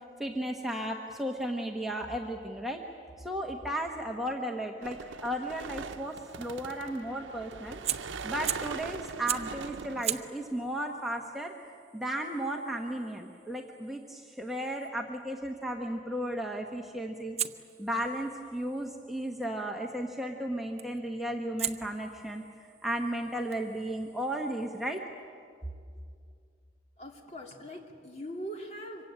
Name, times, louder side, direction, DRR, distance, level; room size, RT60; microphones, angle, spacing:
voice 1, 0.2-2.8 3.2-7.8 8.2-11.5 11.9-17.4 17.8-22.4 22.8-25.0, right 1 dB, ahead, 0 dB, 1.2 m, -34 dB
sound 1, 4.8-10.3, right 5 dB, 90° right, 0.7 m, -41 dB
Fire, 7.8-8.8 9.3-9.6 10.0-14.9 17.4-19.5 20.8-21.1 21.6-25.0, right 11 dB, 35° right, 0.7 m, -40 dB
voice 2, 27.0-29.1, equal, 35° left, 1 dB, 2.9 m, -41 dB
25.5 x 24.0 x 9.0 m, 2.3 s
head